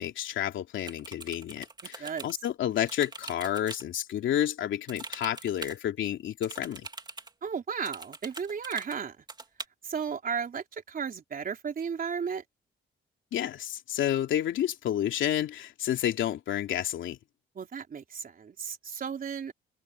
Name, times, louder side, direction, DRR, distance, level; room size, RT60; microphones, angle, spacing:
voice 1, 0.0-6.9 13.3-17.2, left 11 dB, 75° left, 3.0 m, -30 dB
sound 1, 0.8-2.3 2.9-3.8 4.9-5.8 6.4-7.3 7.8-9.0 9.3-9.6, right 3 dB, 20° right, 2.8 m, -43 dB
voice 2, 7.4-9.2 9.8-12.4 17.6-19.5, right 6 dB, 45° right, 3.9 m, -34 dB
open air
cardioid pair, 90°, 20 cm